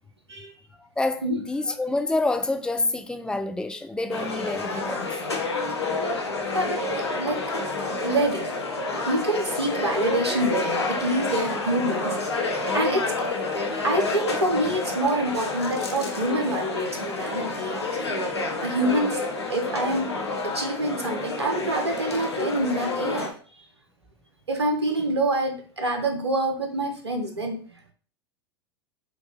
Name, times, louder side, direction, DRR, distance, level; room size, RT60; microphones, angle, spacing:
voice 1, 1.0-5.0, left 2 dB, 5° left, 0.3 m, -27 dB
sound 1, 4.1-23.3, left 3 dB, 75° left, 0.8 m, -29 dB
voice 2, 6.5-7.5 7.9-8.5 9.0-12.2 12.7-13.3 13.8-17.8 18.6-19.2 19.5-20.1 20.4-23.4 24.5-27.6, right 1 dB, 80° right, 0.8 m, -26 dB
5.5 x 2.3 x 3.0 m
figure-of-eight pair, 85°, 14 cm